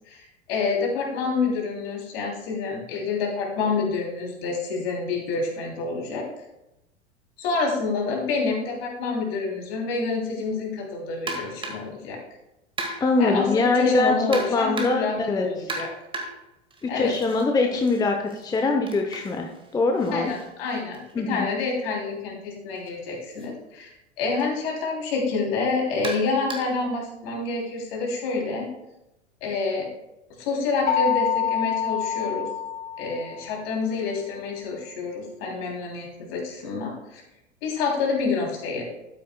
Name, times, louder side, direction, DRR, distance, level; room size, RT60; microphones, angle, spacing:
voice 1, 0.1-6.2 7.4-12.2 13.2-15.9 16.9-17.1 20.1-23.9 24.2-28.7 29.4-29.9 30.4-32.5 33.0-37.2 37.6-38.8, left 4 dB, 55° left, 0 dB, 3.2 m, -28 dB
sound 1, 11.3-12.0 12.8-13.3 14.3-15.2 15.7-17.4 17.8-21.6 22.7-22.9 23.4-23.5 24.4-24.5 26.0-26.9, right 2 dB, 15° right, 1.7 m, -36 dB
voice 2, 13.0-15.7 16.8-20.3 21.2-21.5, left 3 dB, 10° left, 3 dB, 0.7 m, -23 dB
sound 2, 30.9-33.6, left 8 dB, 25° left, 3.8 m, -26 dB
13.0 x 9.1 x 2.3 m, 0.90 s
figure-of-eight pair, 85°, 37 cm